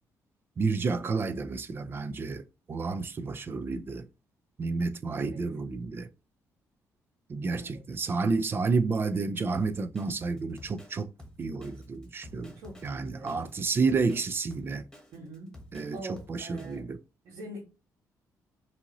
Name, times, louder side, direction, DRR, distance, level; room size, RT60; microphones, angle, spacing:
voice 1, 0.6-4.0 4.6-6.1 7.3-11.1 11.4-12.5 12.8-14.8 15.7-16.0 16.3-17.0, right 4 dB, 35° right, 0.5 m, -30 dB
Drum kit, 9.5-16.8, left 1 dB, 10° left, 1.2 m, -51 dB
voice 2, 12.5-13.5 15.1-15.5 15.9-16.8 17.2-17.6, right 1 dB, 80° right, 1.5 m, -44 dB
5.4 x 2.7 x 3.0 m
cardioid pair, 115°, 6 cm